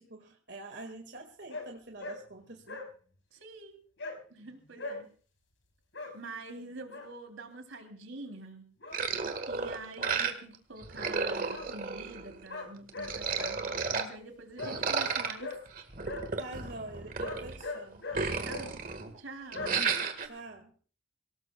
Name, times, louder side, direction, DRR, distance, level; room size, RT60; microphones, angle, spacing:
voice 1, 0.0-2.8 16.4-18.1 20.2-20.7, right 2 dB, 60° right, 3 dB, 2.0 m, -46 dB
sound 1, 1.5-1.6 2.0-2.2 2.4-2.9 4.0-4.1 4.8-5.0 5.9-6.1 6.6-7.1 8.8-9.0 10.0-10.2 11.5-11.7 12.5-13.5 14.6-14.7 15.4-15.6 16.0-16.2 17.2-18.2 18.5-18.7 19.5-19.7, left 3 dB, 75° left, 5.7 m, -39 dB
voice 2, 3.3-3.8 4.3-5.1 6.1-8.7 9.5-15.5 18.4-18.8 19.2-19.8, right 3 dB, 85° right, 6 dB, 3.2 m, -46 dB
sound 2, 8.9-10.6 10.8-12.5 12.9-14.1 14.6-17.6 17.9-19.2 19.5-20.3, right 5 dB, 45° right, 1.7 m, -33 dB
26.0 x 18.0 x 2.3 m, 0.41 s
head